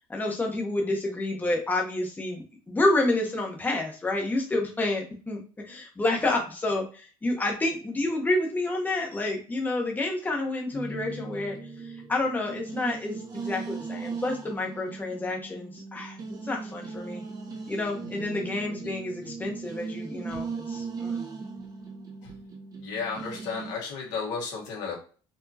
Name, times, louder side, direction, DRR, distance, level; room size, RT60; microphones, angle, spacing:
voice 1, 0.1-5.4 5.7-11.6 12.1-16.2 16.4-17.2 17.7-21.2, left 2 dB, 15° left, 0 dB, 1.1 m, -29 dB
sound 1, 10.7-23.7, right 4 dB, 30° right, 1.0 m, -38 dB
voice 2, 22.8-25.0, left 5 dB, 85° left, -2 dB, 1.9 m, -33 dB
4.6 x 2.7 x 2.8 m, 0.37 s
cardioid pair, 110°, 12 cm